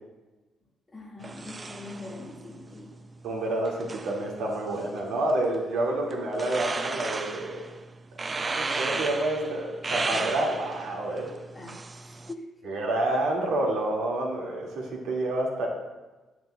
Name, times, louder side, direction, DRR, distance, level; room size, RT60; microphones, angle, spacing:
voice 1, 0.9-2.9 11.5-12.7, left 2 dB, 20° left, -4 dB, 1.7 m, -43 dB
sound 1, 1.2-12.3, right 3 dB, 25° right, 0.4 m, -36 dB
voice 2, 3.2-7.7 8.4-11.3 12.6-15.7, right 1 dB, 85° right, -1 dB, 1.9 m, -28 dB
10.0 x 9.2 x 2.2 m, 1.1 s
cardioid pair, 130°, 0 cm